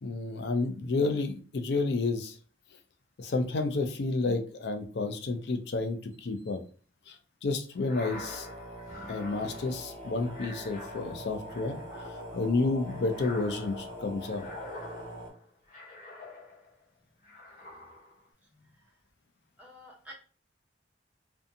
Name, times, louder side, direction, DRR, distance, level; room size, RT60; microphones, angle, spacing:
voice 1, 0.0-2.3 3.2-6.6 7.1-7.2 7.4-8.5 9.1-11.8 12.3-14.5, left 3 dB, 70° left, 7 dB, 0.4 m, -30 dB
sound 1, 7.7-16.8 17.2-18.3, left 2 dB, 50° left, 0.9 m, -47 dB
sound 2, 8.1-15.3, equal, 45° right, 1.2 m, -43 dB
voice 2, 18.5-18.9 19.6-20.1, equal, 10° right, -3 dB, 0.7 m, -51 dB
2.6 x 2.3 x 2.6 m, 0.40 s
head